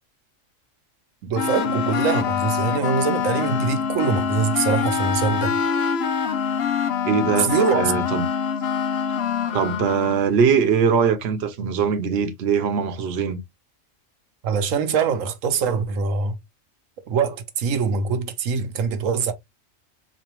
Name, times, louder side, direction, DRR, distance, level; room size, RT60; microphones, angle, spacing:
voice 1, 1.2-5.6 7.3-7.9 14.4-16.4 17.1-19.3, right 6 dB, 80° right, 1.1 m, -23 dB
sound 1, 1.4-10.2, left 7 dB, 60° left, 0.8 m, -24 dB
voice 2, 7.0-8.2 9.5-13.4, right 6 dB, 60° right, 0.9 m, -21 dB
4.2 x 2.6 x 3.0 m
omnidirectional pair, 1.3 m